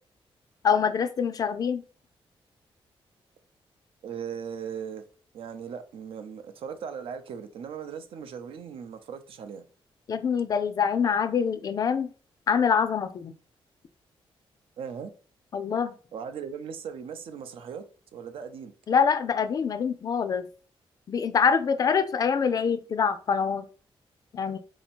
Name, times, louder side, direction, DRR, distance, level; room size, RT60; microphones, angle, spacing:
voice 1, 0.6-1.8 10.1-12.1 12.5-13.3 15.5-15.9 18.9-20.5 21.1-23.7 24.3-24.6, left 6 dB, 40° left, 0.4 m, -25 dB
voice 2, 4.0-5.0 5.3-9.6 14.8-15.1 16.1-17.8 18.1-18.7, right 7 dB, 70° right, 0.6 m, -38 dB
4.3 x 2.8 x 4.3 m
wide cardioid pair, 175°, 10 cm